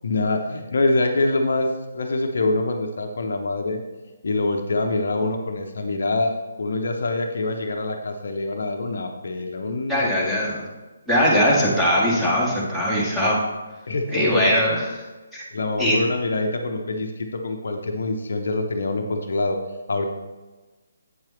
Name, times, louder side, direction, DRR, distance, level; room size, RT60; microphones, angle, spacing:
voice 1, 0.0-3.8 4.2-10.3 13.9-14.6 15.5-19.6 19.9-20.0, left 2 dB, 60° left, 4 dB, 0.7 m, -25 dB
voice 2, 9.9-10.6 11.1-13.4 14.1-14.9 15.3-15.4 15.8-16.0, equal, 5° right, -7 dB, 1.8 m, -20 dB
8.3 x 7.4 x 3.2 m, 1.2 s
figure-of-eight pair, 140°, 0 cm